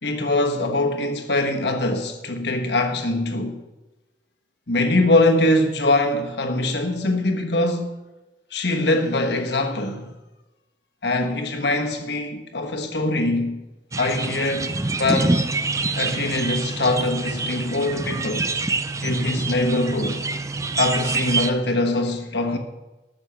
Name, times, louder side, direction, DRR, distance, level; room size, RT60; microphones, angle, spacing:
voice 1, 0.0-3.6 4.7-7.9 8.5-10.1 11.0-13.6 14.0-14.7 15.0-15.4 16.0-18.5 19.0-20.2 20.8-22.6, left 2 dB, 65° left, 1.3 m, -22 dB
sound 1, 13.9-21.5, right 3 dB, 15° right, 0.4 m, -26 dB
13.0 x 6.7 x 5.8 m
head